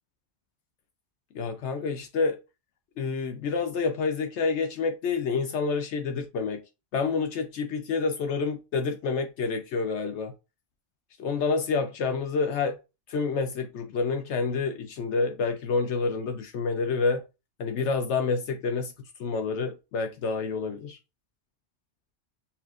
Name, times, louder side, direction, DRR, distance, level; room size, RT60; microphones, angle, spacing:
voice 1, 1.3-2.4 3.0-6.6 6.9-10.3 11.2-12.8 13.1-17.2 17.6-18.9 19.2-21.0, left 4 dB, 80° left, 1.0 m, -28 dB
7.0 x 2.5 x 2.4 m
omnidirectional pair, 1.2 m